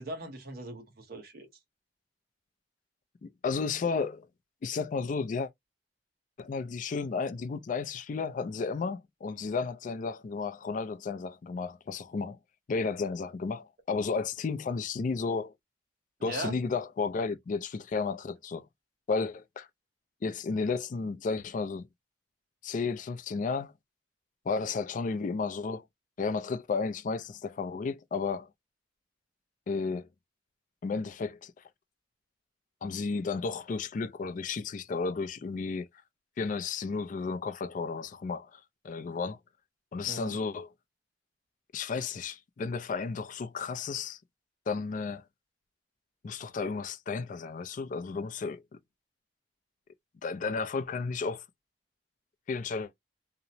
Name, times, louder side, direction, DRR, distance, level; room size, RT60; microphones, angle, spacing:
voice 1, 0.0-1.5 16.2-16.6 40.1-40.4, right 1 dB, 55° right, 0.8 m, -39 dB
voice 2, 3.2-4.3 4.6-5.5 6.4-12.4 12.7-15.5 16.2-18.7 19.1-19.7 20.2-21.9 22.6-23.7 24.5-25.9 26.2-28.5 29.7-30.1 30.8-31.6 32.8-35.9 36.4-38.6 38.8-39.4 39.9-40.7 41.7-44.2 44.7-45.2 46.2-48.6 50.2-51.4 52.5-52.9, left 4 dB, 45° left, 0.3 m, -33 dB
2.8 x 2.0 x 2.5 m
head